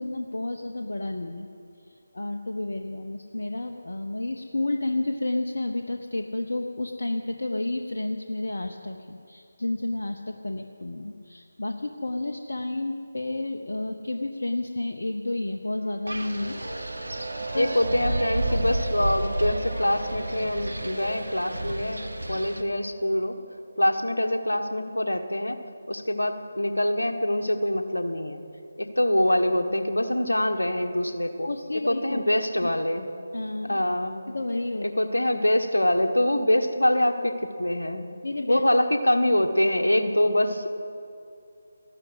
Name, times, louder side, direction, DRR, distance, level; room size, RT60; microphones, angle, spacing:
voice 1, 0.0-1.5 2.1-16.6 17.3-17.7 31.4-32.2 33.3-33.8 34.3-34.9 38.2-38.6, left 2 dB, 65° left, 4 dB, 0.8 m, -31 dB
Wind instrument woodwind instrument, 15.7-19.2 19.6-21.7 21.9-22.1 22.5-22.7 23.0-23.2, equal, 15° left, 4.9 m, -45 dB
sound 1, 16.0-25.5, right 5 dB, 50° right, 0.5 m, -39 dB
Wind, 16.1-22.6, right 1 dB, 80° right, 1.2 m, -32 dB
voice 2, 17.6-23.3 23.8-25.6 25.9-28.4 28.8-31.5 31.9-33.1 33.6-34.2 34.8-38.1 38.5-40.7, left 1 dB, 80° left, 6 dB, 1.4 m, -24 dB
14.5 x 12.0 x 8.0 m, 2.5 s
figure-of-eight pair, 155°, 0 cm